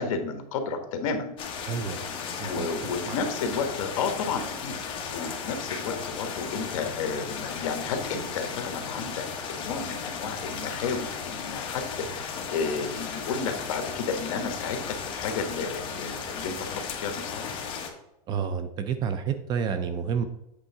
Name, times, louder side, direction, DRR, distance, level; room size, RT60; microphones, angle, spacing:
voice 1, 0.0-1.3 2.1-9.2 9.5-14.8 15.1-17.5, left 5 dB, 55° left, 6 dB, 1.4 m, -32 dB
sound 1, 1.4-17.9, left 6 dB, 25° left, 1.3 m, -35 dB
voice 2, 1.7-2.1 2.4-3.2 18.3-20.2, right 7 dB, 20° right, 10 dB, 0.4 m, -30 dB
8.3 x 3.6 x 5.7 m, 0.89 s
supercardioid pair, 155°, 19 cm